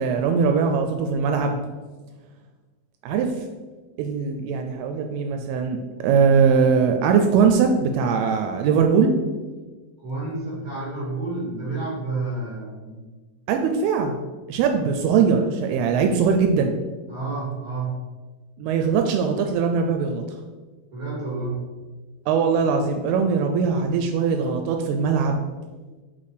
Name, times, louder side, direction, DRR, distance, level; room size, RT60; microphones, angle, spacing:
voice 1, 0.0-1.6 3.0-3.3 4.0-5.8 6.0-9.1 13.5-14.2 14.5-16.7 18.6-20.2 22.3-25.4, right 6 dB, 85° right, 5 dB, 2.5 m, -21 dB
voice 2, 10.0-13.0 17.1-18.0 20.9-21.6, right 3 dB, 35° right, -8 dB, 1.7 m, -30 dB
5.5 x 4.3 x 4.8 m, 1.3 s
omnidirectional pair, 4.5 m